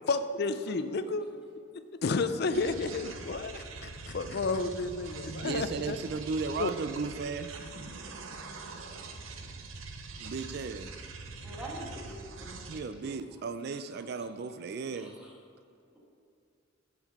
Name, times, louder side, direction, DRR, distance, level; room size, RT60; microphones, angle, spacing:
voice 1, 0.1-1.3 2.0-6.0 6.6-6.7, left 3 dB, 55° left, 10 dB, 0.4 m, -31 dB
sound 1, 2.5-12.8, right 3 dB, 90° right, 0.7 m, -43 dB
voice 2, 5.4-7.5 10.2-10.9 12.7-15.1, right 4 dB, 55° right, 11 dB, 0.4 m, -35 dB
voice 3, 11.4-12.7 14.9-15.3, right 1 dB, 5° right, -5 dB, 1.4 m, -44 dB
7.2 x 5.8 x 4.8 m, 2.5 s
head